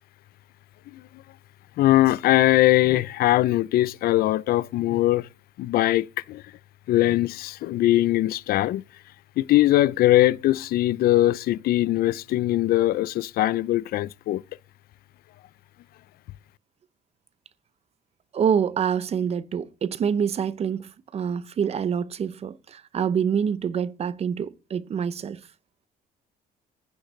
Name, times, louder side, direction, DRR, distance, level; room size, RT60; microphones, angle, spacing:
voice 1, 1.8-5.3 5.6-6.4 6.9-8.8 9.4-14.4, left 15 dB, 65° left, 0.4 m, -21 dB
voice 2, 18.3-25.4, right 7 dB, 40° right, 0.6 m, -26 dB
15.0 x 6.4 x 3.2 m
cardioid pair, 110°, 17 cm